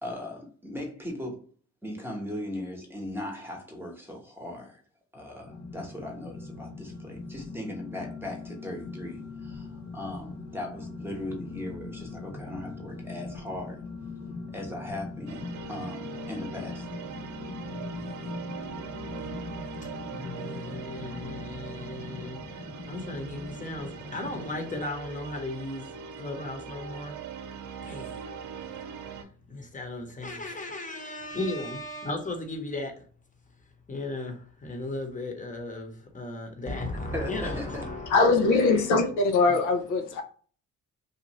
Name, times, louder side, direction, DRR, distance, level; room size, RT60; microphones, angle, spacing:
voice 1, 0.0-1.4 1.8-4.8 5.1-13.8 14.5-16.9 37.1-37.9, left 1 dB, 5° right, 1.0 m, -38 dB
sound 1, 5.4-24.8, left 3 dB, 50° left, 0.7 m, -41 dB
sound 2, 15.3-29.2, right 6 dB, 75° right, 0.5 m, -41 dB
voice 2, 20.0-27.2 27.8-28.3 29.0-33.0 33.9-38.7 39.5-39.6, left 2 dB, 25° left, 0.9 m, -36 dB
voice 3, 38.1-40.2, left 3 dB, 90° left, 0.6 m, -22 dB
2.7 x 2.4 x 3.0 m
cardioid pair, 90°, 30 cm